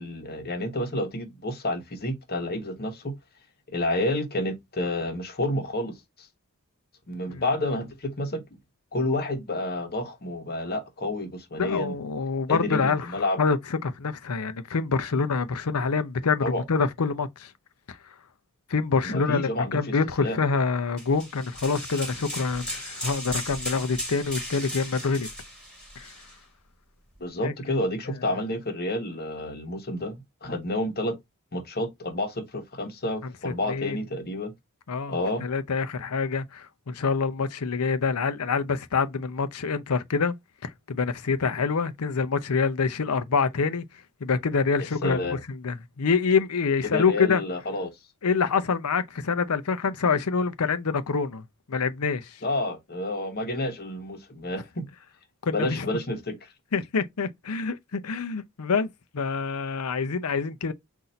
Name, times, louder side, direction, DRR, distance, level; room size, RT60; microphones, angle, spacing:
voice 1, 0.0-3.1 3.7-6.0 7.1-8.4 8.9-12.0 12.5-13.4 16.4-16.6 19.0-19.9 20.2-20.4 27.2-31.2 31.5-34.5 35.1-35.4 45.0-45.4 46.8-47.9 52.4-54.8 55.5-56.4, left 1 dB, 45° left, 1.1 m, -29 dB
voice 2, 11.6-13.1 13.4-13.6 13.8-17.5 18.7-25.3 26.0-26.1 27.4-27.5 33.4-34.0 34.9-40.4 40.6-43.8 44.2-47.4 48.2-51.4 51.7-52.3 55.5-55.9 56.7-58.9 59.1-60.7, left 5 dB, 80° left, 0.6 m, -26 dB
sound 1, 21.0-26.4, equal, 5° left, 1.4 m, -36 dB
4.0 x 2.7 x 4.3 m
head